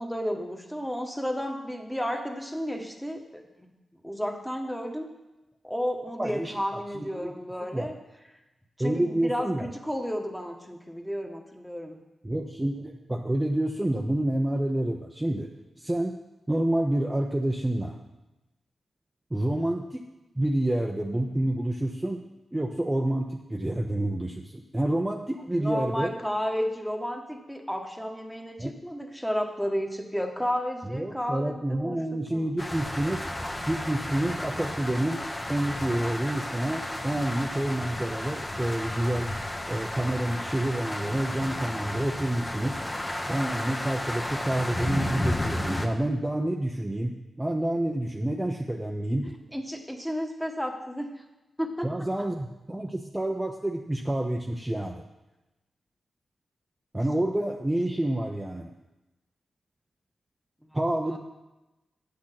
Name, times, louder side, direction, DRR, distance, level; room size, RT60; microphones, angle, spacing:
voice 1, 0.0-3.7 4.0-5.1 5.6-7.9 8.8-12.0 25.5-32.0 32.3-32.5 49.5-51.1 51.6-51.9 60.6-60.8 61.0-61.2, equal, 5° left, 2 dB, 1.6 m, -32 dB
voice 2, 6.2-7.3 7.6-7.9 8.8-9.7 12.2-15.5 15.8-16.2 16.5-18.0 19.3-20.1 20.4-22.2 22.5-26.1 28.6-28.7 30.8-33.2 33.7-35.2 35.5-39.3 39.7-42.8 43.3-49.3 51.8-55.0 56.9-58.7 60.7-61.2, right 1 dB, 15° right, 1 dB, 0.8 m, -28 dB
sound 1, 32.6-45.9, left 1 dB, 20° left, 1.2 m, -33 dB
8.6 x 6.3 x 5.9 m, 1.0 s
cardioid pair, 50°, 0 cm